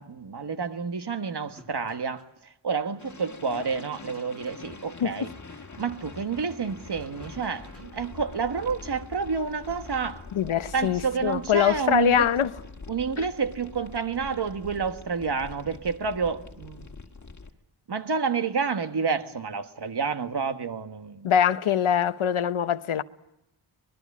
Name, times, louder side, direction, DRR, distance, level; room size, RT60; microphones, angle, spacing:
voice 1, 0.0-5.3 5.8-10.3 10.7-12.3 12.9-16.9 17.9-21.3, right 5 dB, 55° right, 1.4 m, -29 dB
sound 1, 1.6-2.3 3.6-4.7 6.9-8.0, right 1 dB, 30° right, 6.4 m, -55 dB
sound 2, 3.0-17.5, left 4 dB, 35° left, 1.7 m, -44 dB
voice 2, 10.3-12.5 13.2-13.3 21.2-23.0, left 9 dB, 80° left, 0.9 m, -23 dB
25.0 x 20.5 x 8.4 m
wide cardioid pair, 100°, 48 cm